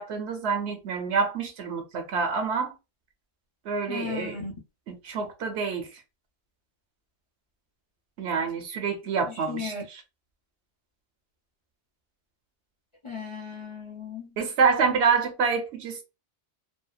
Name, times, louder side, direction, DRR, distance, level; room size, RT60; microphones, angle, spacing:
voice 1, 0.0-2.7 3.7-4.4 4.9-5.9 8.2-9.7 14.4-16.0, right 5 dB, 75° right, 0.9 m, -27 dB
voice 2, 3.9-4.5 9.3-9.8 13.0-14.3, left 5 dB, 35° left, 0.5 m, -36 dB
2.7 x 2.0 x 2.3 m
omnidirectional pair, 1.1 m